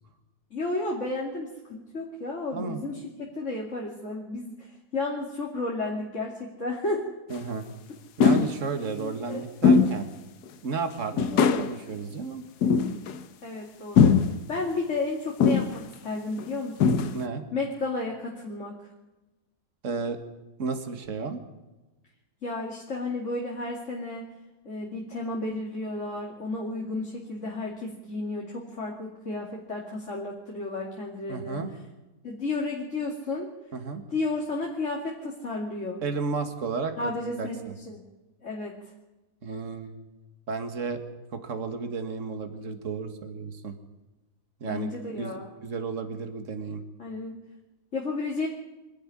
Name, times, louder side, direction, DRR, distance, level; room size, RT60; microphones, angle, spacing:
voice 1, 0.5-7.0 9.0-9.4 13.4-17.1 17.5-18.8 22.4-24.3 24.6-31.6 32.2-33.5 34.1-36.0 37.0-38.0 38.4-38.8 44.6-45.5 47.0-47.4 47.9-48.5, left 2 dB, 50° left, -2 dB, 3.0 m, -32 dB
voice 2, 2.5-2.8 7.3-7.7 8.2-10.1 10.6-12.4 17.1-17.4 19.8-20.2 20.6-21.4 31.3-31.7 33.7-34.0 36.0-36.9 37.4-37.7 39.4-40.1 40.5-41.0 41.3-43.7 44.6-44.9 45.2-46.8, right 4 dB, 50° right, 7 dB, 2.1 m, -33 dB
sound 1, 7.4-7.5 8.2-8.6 9.6-10.0 10.5-10.6 11.2-11.7 12.6-13.2 14.0-14.4 15.4-15.9 16.4-16.5 16.8-17.2, left 6 dB, 85° left, 1.5 m, -20 dB
25.0 x 11.5 x 9.9 m, 1.1 s
omnidirectional pair, 1.7 m